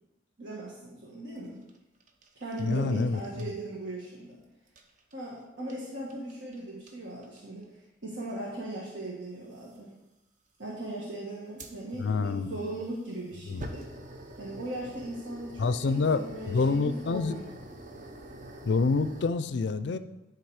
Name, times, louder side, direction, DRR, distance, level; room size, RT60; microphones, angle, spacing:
voice 1, 0.4-1.6 2.3-4.4 5.1-7.7 8.0-9.9 10.6-13.8 14.4-17.5, right 1 dB, 75° right, -5 dB, 1.4 m, -38 dB
sound 1, 1.4-3.0 3.2-3.5 4.7-5.1 5.7-5.8 6.1-6.6 6.9-7.0 7.2-7.6 8.7-8.8 9.6-9.8 11.6-19.3, right 1 dB, 40° right, 0.6 m, -46 dB
voice 2, 2.6-3.5 12.0-12.6 13.5-13.7 15.6-17.4 18.6-20.0, left 4 dB, 65° left, 13 dB, 0.4 m, -27 dB
10.5 x 3.9 x 4.8 m, 0.98 s
head